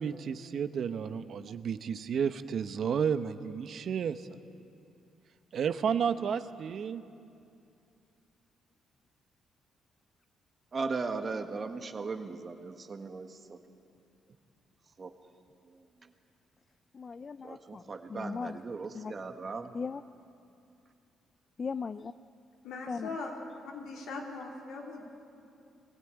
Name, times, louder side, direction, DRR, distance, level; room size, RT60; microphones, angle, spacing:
voice 1, 0.0-4.2 5.5-7.0, right 7 dB, 60° right, 11 dB, 0.8 m, -32 dB
voice 2, 10.7-13.6 15.0-15.1 17.4-19.7, right 4 dB, 40° right, 7 dB, 1.5 m, -37 dB
voice 3, 16.9-17.8 18.1-18.6 18.9-19.1 19.7-20.0 21.6-22.1 22.9-23.1, left 5 dB, 40° left, 13 dB, 0.4 m, -37 dB
voice 4, 22.6-23.4 23.6-25.1, left 3 dB, 80° left, 0 dB, 3.3 m, -40 dB
21.0 x 15.5 x 9.0 m, 2.5 s
cardioid pair, 90°, 0 cm